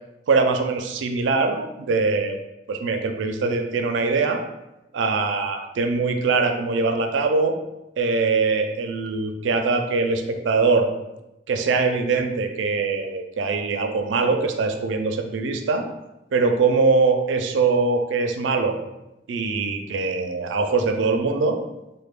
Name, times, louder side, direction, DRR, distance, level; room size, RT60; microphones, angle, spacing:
voice 1, 0.3-2.4 2.7-4.4 4.9-7.5 8.0-10.9 11.5-15.8 16.3-18.8 19.3-21.6, right 4 dB, 75° right, 5 dB, 0.4 m, -22 dB
3.2 x 2.1 x 3.5 m, 0.94 s
head